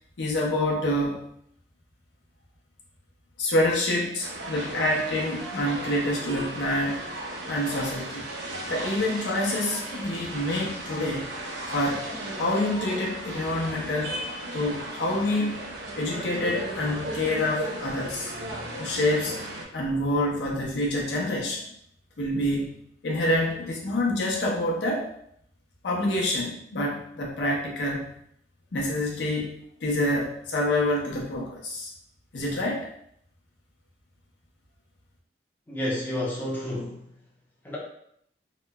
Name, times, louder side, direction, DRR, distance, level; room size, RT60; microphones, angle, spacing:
voice 1, 0.2-1.2 3.4-7.0 7.5-8.3 8.7-11.3 11.7-14.2 14.5-15.5 16.0-18.3 18.8-19.4 19.7-21.7 22.2-25.1 25.8-28.2 28.7-29.5 29.8-31.9 32.3-32.9, left 1 dB, 85° left, -3 dB, 0.6 m, -27 dB
sound 1, 4.2-19.6, right 1 dB, 80° right, 0.5 m, -36 dB
voice 2, 35.7-37.1 37.6-37.8, left 1 dB, 10° left, -6 dB, 0.6 m, -30 dB
2.9 x 2.0 x 2.2 m, 0.71 s
head